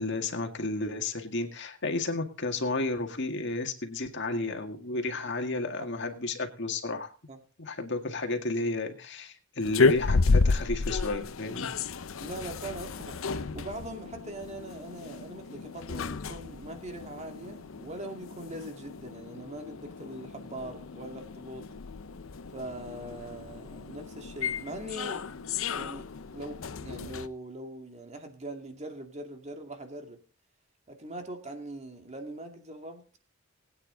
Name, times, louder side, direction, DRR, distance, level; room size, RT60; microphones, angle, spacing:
voice 1, 0.0-7.1 7.6-11.7, left 2 dB, 60° left, 5 dB, 1.9 m, -32 dB
sound 1, 9.6-27.3, left 4 dB, 85° left, 0.7 m, -32 dB
voice 2, 12.2-21.6 22.5-25.3 25.7-30.2 30.9-33.2, right 1 dB, 35° right, 4 dB, 2.3 m, -42 dB
20.5 x 9.2 x 3.9 m, 0.38 s
head